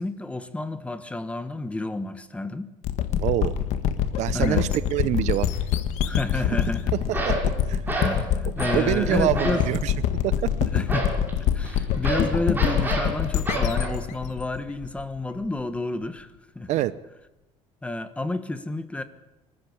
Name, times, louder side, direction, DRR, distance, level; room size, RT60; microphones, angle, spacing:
voice 1, 0.0-2.7 4.3-4.7 6.0-6.9 7.9-9.7 10.7-11.2 11.5-16.8 17.8-19.0, left 2 dB, 10° left, 11 dB, 1.4 m, -30 dB
sound 1, 2.8-15.5, left 9 dB, 65° left, 1.7 m, -25 dB
voice 2, 3.2-3.5 4.2-5.5 6.9-7.4 7.7-8.0 8.7-9.9 10.2-10.5 16.7-16.9, right 14 dB, 65° right, 17 dB, 0.8 m, -25 dB
sound 2, 5.4-5.5 7.1-7.5 7.9-8.2 8.6-8.9 9.3-9.7 10.9-13.9, right 3 dB, 15° right, 6.1 m, -29 dB
23.5 x 13.5 x 8.6 m, 0.97 s
cardioid pair, 120°, 13 cm